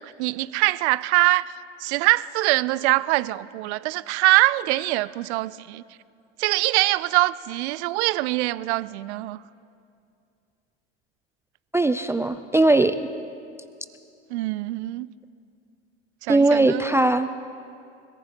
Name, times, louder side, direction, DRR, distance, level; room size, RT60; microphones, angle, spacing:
voice 1, 0.0-1.4 1.8-5.8 6.4-9.4 14.3-15.1 16.2-17.0, right 19 dB, 70° right, 0.6 m, -23 dB
voice 2, 11.7-13.0 16.3-17.3, right 2 dB, 10° right, 0.3 m, -19 dB
30.0 x 14.5 x 2.9 m
hypercardioid pair, 85°, 35 cm